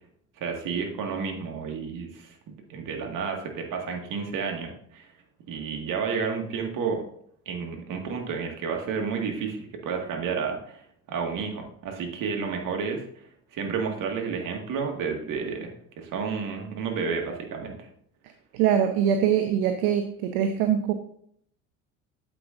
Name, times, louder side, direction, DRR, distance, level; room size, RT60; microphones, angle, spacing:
voice 1, 0.4-5.1 5.5-7.0 7.5-10.8 11.1-13.0 13.5-17.9, right 5 dB, 55° right, 3 dB, 1.8 m, -31 dB
voice 2, 18.5-20.9, right 9 dB, 70° right, 7 dB, 0.8 m, -23 dB
8.8 x 7.8 x 2.5 m, 0.67 s
hypercardioid pair, 65°, 39 cm